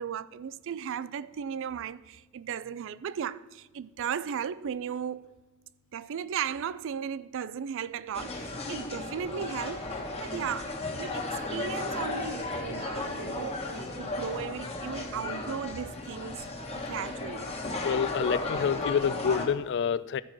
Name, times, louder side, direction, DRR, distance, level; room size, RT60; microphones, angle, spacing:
voice 1, 0.0-5.3 5.9-16.4 16.7-17.5 18.2-18.3, right 8 dB, 65° right, 0.4 m, -36 dB
sound 1, 8.1-19.4, left 2 dB, 30° left, 1.5 m, -35 dB
voice 2, 17.8-20.2, left 7 dB, 55° left, 0.3 m, -28 dB
13.5 x 4.7 x 5.9 m
head